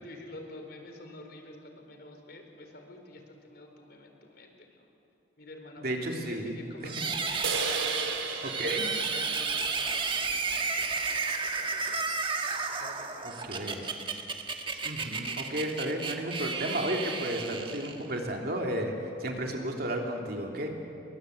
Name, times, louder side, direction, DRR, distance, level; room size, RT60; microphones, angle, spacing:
voice 1, 0.0-4.9 5.4-8.4 8.8-11.1 11.6-12.1 12.7-14.0, left 1 dB, 55° left, 4 dB, 4.0 m, -48 dB
voice 2, 5.8-6.6 8.4-8.8 13.4-13.8 14.8-18.9 19.2-20.7, right 1 dB, 50° right, 1 dB, 3.2 m, -33 dB
sound 1, 6.9-18.2, right 4 dB, 25° right, 1.6 m, -32 dB
sound 2, 7.4-10.9, right 4 dB, 90° right, 3.2 m, -36 dB
29.5 x 23.0 x 8.1 m, 2.8 s
head